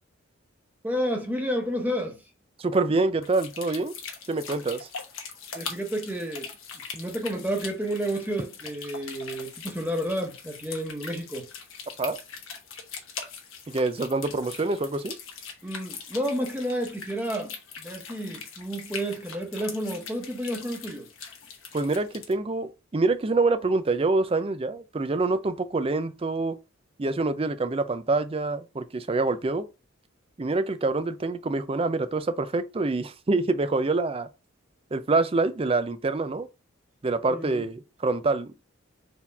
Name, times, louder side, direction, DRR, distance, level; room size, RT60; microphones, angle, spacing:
voice 1, 0.8-2.2 5.5-6.5 6.9-11.5 15.6-21.1 37.3-37.6, equal, 10° right, 0.9 m, -31 dB
voice 2, 2.6-3.9 4.3-4.9 12.0-12.2 13.7-15.1 21.7-26.6 27.0-29.6 30.4-34.3 34.9-36.5 37.0-38.5, right 3 dB, 25° right, 0.4 m, -26 dB
sound 1, 3.2-22.3, left 6 dB, 80° left, 1.1 m, -42 dB
4.1 x 2.9 x 4.1 m
head